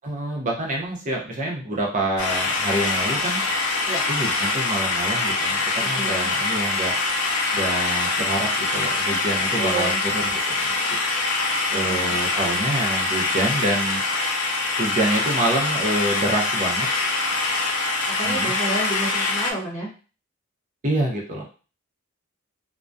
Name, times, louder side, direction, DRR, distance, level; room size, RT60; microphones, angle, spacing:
voice 1, 0.0-3.4 4.1-6.9 7.5-10.7 11.7-14.0 14.8-16.9 18.2-18.5 20.8-21.4, right 1 dB, 40° right, -1 dB, 0.7 m, -27 dB
sound 1, 2.2-19.5, left 3 dB, 80° left, 0.4 m, -24 dB
voice 2, 5.8-6.3 9.6-10.0 11.7-12.2 18.1-19.9, right 2 dB, 15° left, -10 dB, 1.1 m, -30 dB
2.2 x 2.2 x 2.5 m, 0.35 s
head